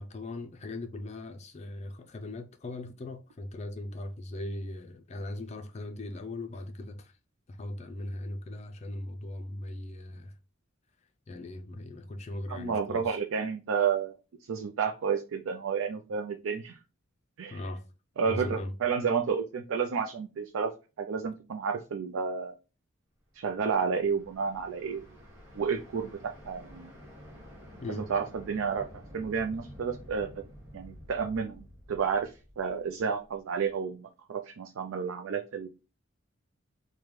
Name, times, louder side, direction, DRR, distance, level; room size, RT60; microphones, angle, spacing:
voice 1, 0.0-7.1 7.5-10.3 11.3-13.2 17.5-17.8 18.2-18.7 27.8-28.1, left 2 dB, 35° left, 0.4 m, -39 dB
voice 2, 12.5-14.1 14.5-16.8 17.4-17.6 18.2-20.7 21.0-22.5 23.3-25.1 25.6-26.9 28.0-30.3 30.7-35.7, right 6 dB, 80° right, 0.4 m, -31 dB
sound 1, 23.4-33.4, equal, 15° right, 1.8 m, -50 dB
5.0 x 2.2 x 3.0 m
head